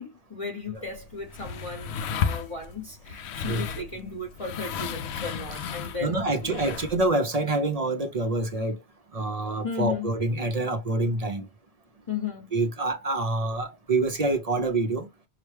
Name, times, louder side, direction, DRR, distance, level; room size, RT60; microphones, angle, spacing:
voice 1, 0.0-6.8 9.6-10.1 12.1-12.5, left 5 dB, 30° left, 1.0 m, -35 dB
sound 1, 0.8-7.1, left 7 dB, 70° left, 0.8 m, -34 dB
voice 2, 3.4-3.9 6.0-8.8 9.1-11.5 12.5-15.1, right 2 dB, 40° right, 0.6 m, -26 dB
5.7 x 2.2 x 3.2 m
omnidirectional pair, 1.2 m